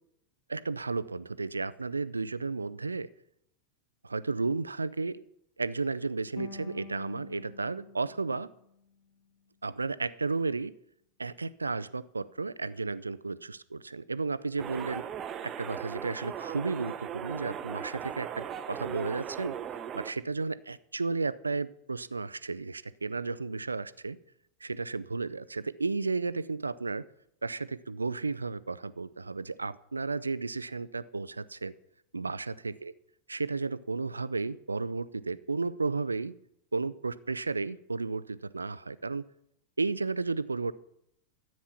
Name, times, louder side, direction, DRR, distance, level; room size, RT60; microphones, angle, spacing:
voice 1, 0.5-3.1 4.0-5.2 5.6-8.5 9.6-10.7 11.2-15.1 15.4-19.6 19.9-24.2 24.6-27.0 27.4-31.7 32.1-32.9 33.3-36.3 36.7-39.3 39.8-40.7, right 4 dB, 80° right, 17 dB, 0.4 m, -33 dB
sound 1, 6.4-9.5, left 5 dB, 55° left, 2.5 m, -48 dB
sound 2, 14.6-20.1, right 8 dB, 30° right, 0.7 m, -38 dB
13.5 x 8.6 x 5.8 m, 0.76 s
figure-of-eight pair, 90°, 0 cm